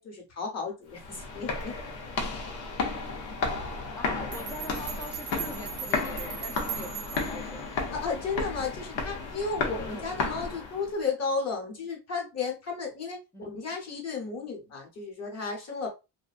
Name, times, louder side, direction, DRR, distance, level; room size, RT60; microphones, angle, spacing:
voice 1, 0.0-1.8 7.9-15.9, left 4 dB, 35° left, 1.0 m, -33 dB
sound 1, 0.9-10.9, left 4 dB, 85° left, 0.8 m, -33 dB
voice 2, 4.0-7.9 9.7-10.0 13.3-13.5, left 1 dB, 10° left, 0.3 m, -43 dB
sound 2, 4.3-7.5, right 10 dB, 80° right, 0.6 m, -39 dB
2.6 x 2.2 x 2.4 m
cardioid pair, 130°, 42 cm